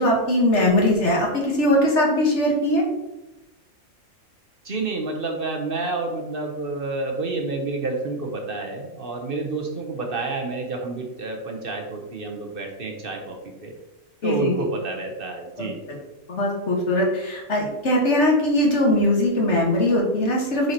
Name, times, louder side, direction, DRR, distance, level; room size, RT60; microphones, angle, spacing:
voice 1, 0.0-2.8 14.2-14.5 15.6-15.7 16.3-20.7, left 1 dB, 55° left, -2 dB, 1.7 m, -20 dB
voice 2, 4.6-13.8 14.2-16.0, right 3 dB, 45° right, 2 dB, 1.0 m, -29 dB
7.6 x 4.6 x 2.9 m, 0.98 s
omnidirectional pair, 1.5 m